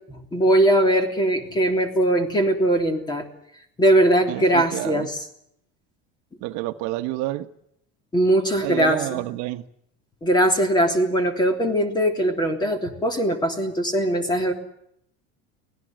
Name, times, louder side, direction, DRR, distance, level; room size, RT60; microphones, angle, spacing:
voice 1, 0.1-3.2 3.8-5.2 8.1-9.2 10.2-14.5, right 1 dB, 15° left, 6 dB, 3.3 m, -20 dB
voice 2, 4.3-5.1 6.4-7.5 8.6-9.6, right 16 dB, 65° right, 9 dB, 1.3 m, -29 dB
24.5 x 18.0 x 7.7 m, 0.73 s
cardioid pair, 160°, 30 cm